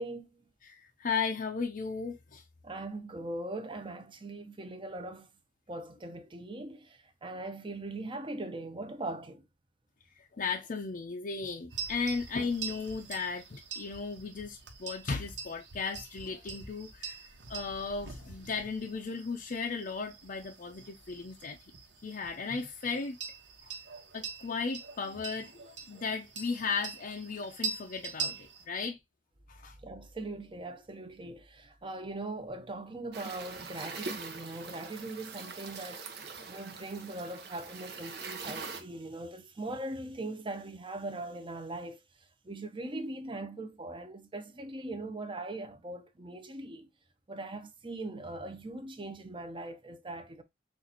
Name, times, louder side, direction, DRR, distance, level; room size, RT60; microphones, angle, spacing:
voice 1, 0.0-0.5 2.6-5.3 5.7-9.4 29.8-46.9 47.3-50.4, right 2 dB, 30° right, 0.8 m, -40 dB
voice 2, 0.6-2.4 10.2-21.6 22.0-23.2 23.6-23.7 24.1-29.0 29.5-29.8, left 4 dB, 50° left, 0.5 m, -36 dB
sound 1, 11.7-28.6, right 5 dB, 80° right, 1.3 m, -43 dB
sound 2, 33.1-38.8, right 4 dB, 65° right, 1.0 m, -43 dB
6.3 x 2.6 x 2.9 m
head